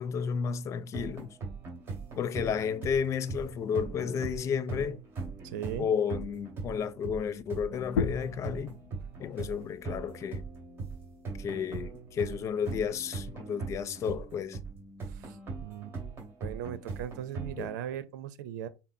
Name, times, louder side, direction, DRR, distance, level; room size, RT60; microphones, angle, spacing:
voice 1, 0.0-1.4 2.2-5.0 5.8-8.8 9.2-10.4 11.4-14.6 17.6-17.7, left 7 dB, 30° left, 0.4 m, -32 dB
sound 1, 0.9-17.7, right 4 dB, 25° right, 2.2 m, -40 dB
voice 2, 5.4-5.9 15.1-15.4 15.6-15.9 16.4-18.7, right 10 dB, 80° right, 0.7 m, -38 dB
sound 2, 7.8-13.0, left 6 dB, 90° left, 0.8 m, -39 dB
5.8 x 2.1 x 4.3 m
supercardioid pair, 130°, 10 cm